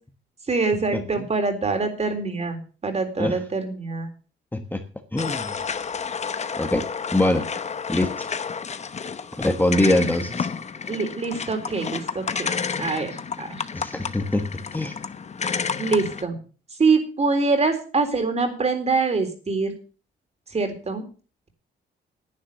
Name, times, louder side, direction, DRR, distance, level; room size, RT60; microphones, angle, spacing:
voice 1, 0.5-4.1 10.9-13.7 15.8-16.4 16.8-19.7 20.5-21.1, right 4 dB, 35° right, 3.7 m, -24 dB
voice 2, 4.5-4.8 5.1-5.5 6.6-7.5 7.9-8.3 9.4-10.5 13.7-14.9, left 1 dB, 10° left, 1.4 m, -23 dB
sound 1, 5.2-16.2, left 6 dB, 35° left, 0.9 m, -31 dB
10.5 x 9.4 x 6.9 m
cardioid pair, 90°, 20 cm